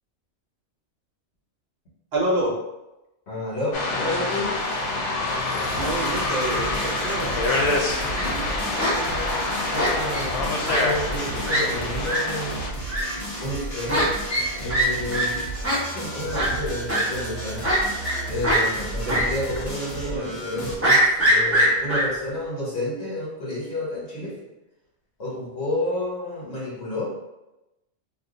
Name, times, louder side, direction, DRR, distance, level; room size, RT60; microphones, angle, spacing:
voice 1, 2.1-2.5 5.7-7.3 19.1-19.2, right 1 dB, 60° right, -3 dB, 1.0 m, -27 dB
voice 2, 3.3-4.5 8.1-9.4 9.7-12.6 13.4-14.1 14.6-15.4 15.9-17.7 18.3-24.4 25.2-27.1, left 1 dB, 70° left, -5 dB, 1.4 m, -30 dB
sound 1, 3.7-12.7, left 2 dB, 90° left, 1.0 m, -26 dB
sound 2, 5.6-20.8, right 1 dB, 45° left, 0.9 m, -33 dB
Fowl, 7.9-8.3 8.8-8.9 9.8-10.2 10.6-10.8 11.1-11.2 11.5-11.6 12.0-12.2 12.9-13.0 13.9-14.0 14.3-14.4 14.7-14.9 15.1-15.2 15.6-15.8 16.3-16.5 16.9-17.0 17.6-18.2 18.4-18.6 19.1-19.2 19.6-19.7 20.8-22.0, right 1 dB, 15° right, 1.0 m, -21 dB
2.6 x 2.3 x 3.8 m, 0.97 s
omnidirectional pair, 1.2 m